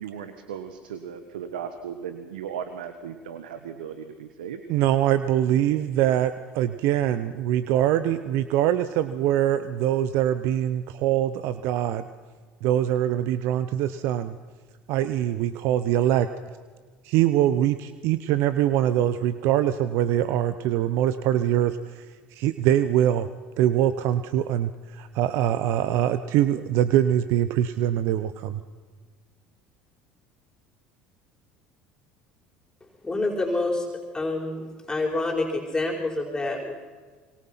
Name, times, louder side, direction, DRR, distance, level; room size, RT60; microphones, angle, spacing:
voice 1, 0.0-4.6, right 8 dB, 85° right, 9 dB, 1.6 m, -36 dB
voice 2, 4.7-12.1 12.6-14.4 14.9-16.3 17.0-22.0 22.3-23.3 23.6-28.6, right 11 dB, 65° right, 12 dB, 1.0 m, -23 dB
voice 3, 33.0-33.9 34.1-36.7, left 2 dB, 15° left, 0 dB, 4.8 m, -27 dB
25.5 x 23.5 x 5.8 m, 1.5 s
hypercardioid pair, 75°, 5 cm